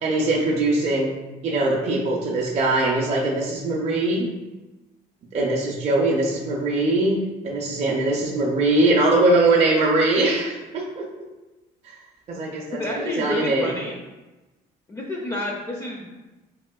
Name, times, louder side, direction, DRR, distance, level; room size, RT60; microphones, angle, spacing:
voice 1, 0.0-1.1 1.4-4.3 5.3-11.1 12.3-12.8 13.2-13.7, right 2 dB, 40° right, -3 dB, 0.5 m, -21 dB
voice 2, 12.7-13.9 14.9-16.2, left 1 dB, 20° left, -2 dB, 0.4 m, -29 dB
3.5 x 2.7 x 2.2 m, 1.1 s
cardioid pair, 110°, 17 cm